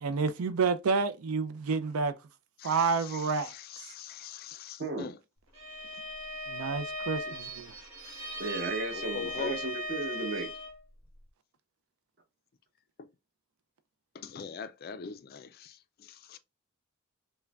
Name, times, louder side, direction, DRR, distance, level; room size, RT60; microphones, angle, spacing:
voice 1, 0.0-2.1 2.6-3.9 6.5-7.4, right 5 dB, 85° right, 0.4 m, -29 dB
voice 2, 2.6-5.1 8.0-8.2 8.9-9.6 13.0-13.1 14.1-16.4, left 6 dB, 45° left, 0.3 m, -42 dB
Bowed string instrument, 5.5-10.8, equal, 65° right, 1.4 m, -38 dB
voice 3, 8.4-10.5, right 2 dB, 50° right, 1.0 m, -34 dB
5.5 x 2.1 x 2.3 m
head